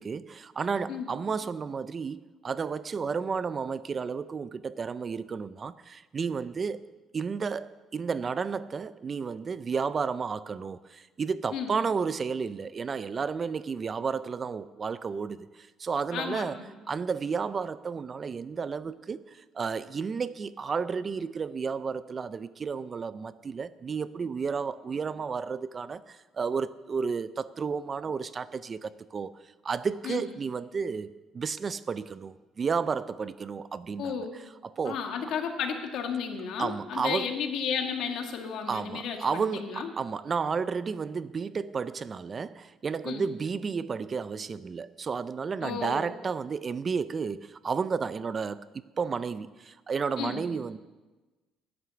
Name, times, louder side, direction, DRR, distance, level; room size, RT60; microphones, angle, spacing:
voice 1, 0.0-6.8 7.1-16.6 16.9-29.3 29.6-31.1 31.3-34.1 34.6-35.0 36.6-37.3 38.7-50.8, right 5 dB, 30° right, 0.4 m, -32 dB
voice 2, 16.1-16.7 30.0-30.2 34.0-34.3 34.8-39.9 43.0-43.2 45.6-46.1 50.2-50.4, left 7 dB, 65° left, 1.7 m, -33 dB
11.0 x 9.7 x 6.9 m
cardioid pair, 125°, 0 cm